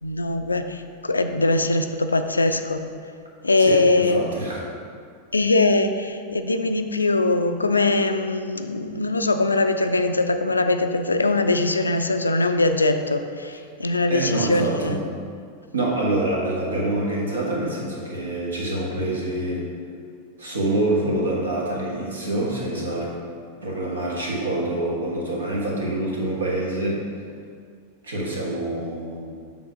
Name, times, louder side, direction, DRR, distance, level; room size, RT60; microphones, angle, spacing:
voice 1, 0.0-2.8 3.4-4.2 5.3-15.0, left 2 dB, 80° left, 8 dB, 0.3 m, -21 dB
voice 2, 3.6-4.6 14.1-15.0 15.7-19.7 20.4-23.1 23.6-27.0 28.0-29.3, right 1 dB, 75° right, -3 dB, 1.3 m, -26 dB
7.0 x 3.7 x 4.9 m, 2.2 s
figure-of-eight pair, 90°, 0 cm